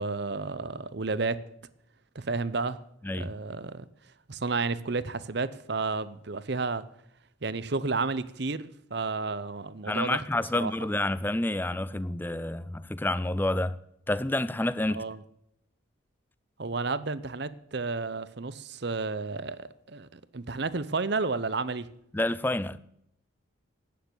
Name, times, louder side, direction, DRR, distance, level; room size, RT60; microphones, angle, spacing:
voice 1, 0.0-1.4 2.1-2.8 3.1-3.9 4.3-6.8 7.4-10.2 10.5-10.7 14.9-15.2 16.6-21.9, right 3 dB, 55° right, 0.8 m, -31 dB
voice 2, 9.9-13.8 14.1-15.0 22.1-22.8, left 1 dB, 10° left, 0.4 m, -29 dB
11.5 x 9.3 x 9.4 m
head